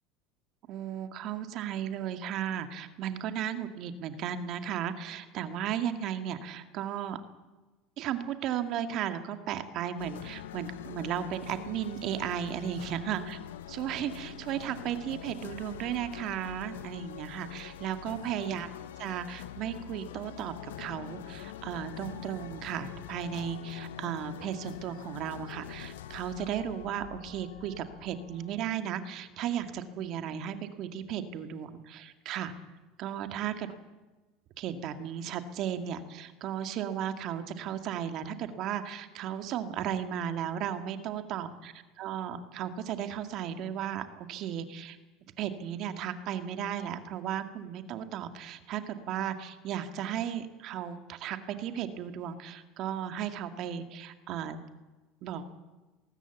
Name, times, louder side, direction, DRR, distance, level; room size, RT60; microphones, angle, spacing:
voice 1, 0.7-7.2 8.0-13.4 13.7-18.7 19.0-32.5 33.0-33.7 34.6-45.0 45.4-54.6 55.2-55.5, right 9 dB, 55° right, 8 dB, 2.0 m, -35 dB
sound 1, 10.0-28.6, left 11 dB, 90° left, 0.8 m, -45 dB
sound 2, 20.3-29.7 30.0-30.1, left 4 dB, 65° left, 4.5 m, -54 dB
20.0 x 18.5 x 8.2 m, 1.2 s
supercardioid pair, 95°, 0 cm